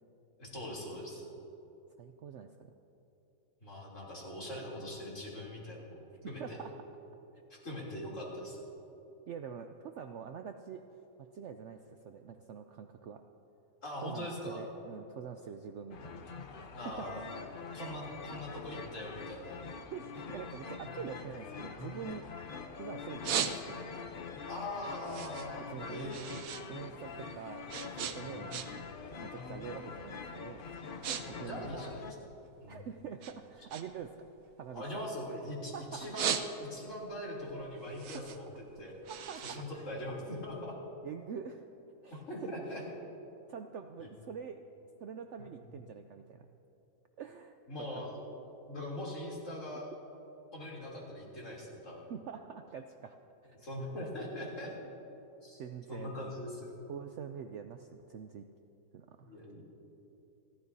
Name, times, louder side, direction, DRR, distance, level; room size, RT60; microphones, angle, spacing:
voice 1, 0.4-1.2 3.6-6.0 6.3-6.6 7.6-8.6 13.8-14.6 16.7-17.2 17.7-19.6 24.5-26.3 28.0-28.2 31.2-32.1 32.6-32.8 34.7-38.2 38.8-39.0 39.4-40.8 42.1-42.8 44.0-44.1 45.4-45.6 47.7-48.2 48.7-49.9 50.5-52.0 53.6-54.7 55.4-55.6 55.9-56.7 59.2-59.6, left 1 dB, 45° left, -5 dB, 3.5 m, -41 dB
voice 2, 2.0-2.5 6.2-6.7 7.5-7.6 9.3-10.8 11.2-13.2 14.0-16.2 16.6-17.1 17.6-17.7 19.9-22.3 22.8-24.0 25.7-26.1 26.7-30.7 31.0-32.0 32.7-34.2 34.6-35.1 35.7-36.1 39.1-39.9 41.0-41.6 42.0-42.8 43.5-44.6 45.0-46.5 47.2-47.5 47.9-48.0 52.1-53.2 53.4-53.6 55.6-56.3 56.9-58.5 58.9-59.4, right 7 dB, 85° right, 7 dB, 0.6 m, -45 dB
sound 1, 15.9-32.1, left 5 dB, 60° left, 0.5 m, -45 dB
sound 2, 21.5-22.6 23.0-24.0 24.5-26.7 26.9-29.0 29.3-29.6 30.2-30.4 30.7-31.2 31.5-32.7 33.2-35.5 35.9-37.0 37.4-40.5, right 8 dB, 60° right, 1.0 m, -38 dB
29.5 x 12.5 x 2.7 m, 2.9 s
omnidirectional pair, 1.8 m